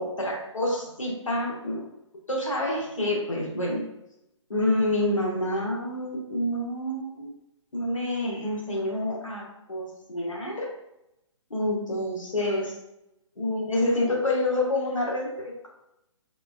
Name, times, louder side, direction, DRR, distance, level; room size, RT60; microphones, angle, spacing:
voice 1, 0.0-1.9 2.3-3.8 4.5-7.3 7.7-10.7 11.5-12.7 13.4-15.7, left 1 dB, 90° left, -2 dB, 0.9 m, -28 dB
3.4 x 2.1 x 2.2 m, 0.86 s
figure-of-eight pair, 135°, 16 cm